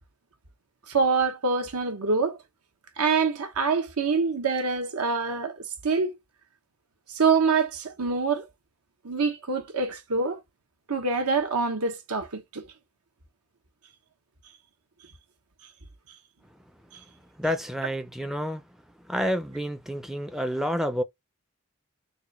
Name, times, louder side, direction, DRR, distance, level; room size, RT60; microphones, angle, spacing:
voice 1, 0.9-2.4 3.0-6.1 7.1-8.5 9.0-10.4 10.9-12.7 16.9-17.0, right 4 dB, 90° right, 1.0 m, -25 dB
voice 2, 17.4-18.6 19.0-21.0, equal, ahead, 0.3 m, -29 dB
3.9 x 2.4 x 4.1 m
head